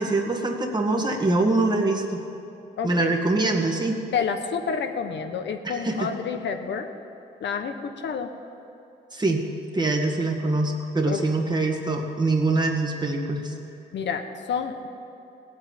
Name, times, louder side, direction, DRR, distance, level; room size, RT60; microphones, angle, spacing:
voice 1, 0.0-2.2 2.8-4.0 5.6-6.1 9.1-9.4 9.7-13.5, right 2 dB, 20° right, 2 dB, 1.8 m, -24 dB
voice 2, 2.8-3.2 4.1-6.9 7.4-8.3 11.0-11.2 13.9-14.9, left 6 dB, 70° left, 6 dB, 1.2 m, -29 dB
18.0 x 8.1 x 8.9 m, 2.8 s
cardioid pair, 110°, 19 cm